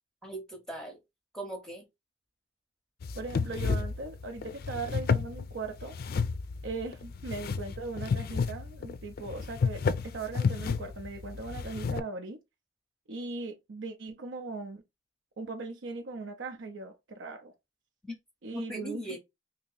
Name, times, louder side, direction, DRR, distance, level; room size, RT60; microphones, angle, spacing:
voice 1, 0.2-1.0 1.3-1.9 18.0-18.1 18.5-19.2, right 1 dB, 5° left, 0.6 m, -39 dB
sound 1, 3.0-12.0, left 5 dB, 55° left, 0.4 m, -32 dB
voice 2, 3.1-5.9 6.6-12.4 13.1-14.8 15.4-17.5 18.4-19.0, right 3 dB, 85° right, 0.6 m, -39 dB
2.9 x 2.8 x 3.8 m
head